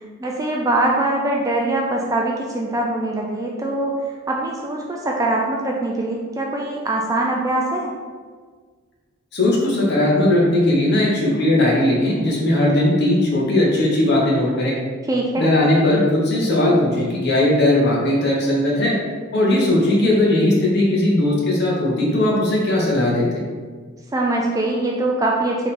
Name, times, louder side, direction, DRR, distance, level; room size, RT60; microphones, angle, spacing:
voice 1, 0.2-3.9 4.3-7.9 15.1-15.5 24.1-25.7, right 2 dB, 15° right, -1 dB, 0.3 m, -22 dB
voice 2, 9.3-14.8 15.4-18.9 19.3-23.4, left 1 dB, 50° left, -4 dB, 1.0 m, -18 dB
3.7 x 3.3 x 4.2 m, 1.5 s
head